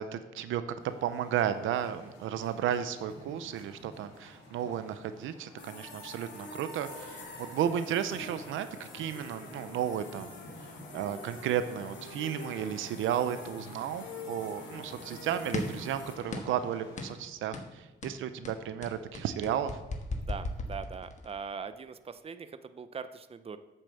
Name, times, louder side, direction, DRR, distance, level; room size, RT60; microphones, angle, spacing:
voice 1, 0.0-10.3 10.9-19.8, right 9 dB, 85° right, 11 dB, 0.7 m, -33 dB
sound 1, 0.8-17.1, left 1 dB, 80° left, 3.5 m, -51 dB
sound 2, 5.6-16.1, left 3 dB, 65° left, 2.2 m, -46 dB
sound 3, 15.5-15.9 16.3-16.6 17.0-17.2 17.5-17.7 18.0-21.4, left 2 dB, 35° left, 1.4 m, -36 dB
voice 2, 20.1-23.6, right 6 dB, 30° right, 11 dB, 0.6 m, -42 dB
8.4 x 7.0 x 7.0 m, 1.1 s
cardioid pair, 90°, 20 cm